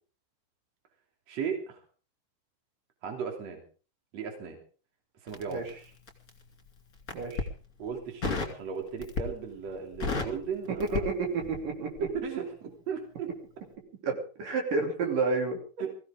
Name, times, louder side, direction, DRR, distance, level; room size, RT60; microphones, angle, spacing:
voice 1, 1.3-1.8 3.0-3.6 4.1-4.6 5.2-5.9 7.8-11.1 12.0-13.3 15.8-15.9, right 6 dB, 45° right, 3 dB, 4.1 m, -36 dB
Crackle, 5.3-6.4 7.0-7.5 8.2-8.6 9.0-9.5 9.8-11.7 12.0-12.2, left 4 dB, 25° left, 2.8 m, -33 dB
voice 2, 7.1-7.5 10.9-11.9 14.0-15.6, right 4 dB, 65° right, 1 dB, 4.6 m, -30 dB
22.0 x 16.0 x 3.7 m, 0.37 s
omnidirectional pair, 4.2 m